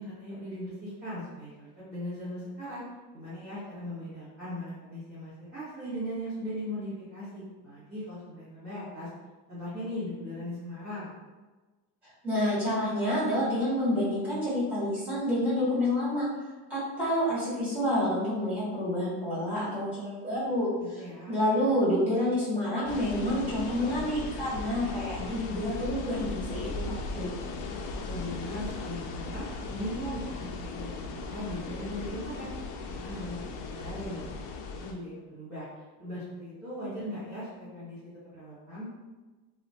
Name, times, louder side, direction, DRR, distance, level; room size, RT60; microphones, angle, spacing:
voice 1, 0.0-2.8 3.1-9.1 9.5-11.2 20.8-21.3 27.9-32.5 32.9-38.9, equal, 20° right, -13 dB, 1.2 m, -39 dB
voice 2, 12.2-16.3 16.7-20.7 21.3-27.4, left 1 dB, 5° right, -10 dB, 1.4 m, -28 dB
sound 1, 22.9-34.9, left 3 dB, 80° left, 0.5 m, -37 dB
2.9 x 2.1 x 2.7 m, 1.2 s
cardioid pair, 155°, 48 cm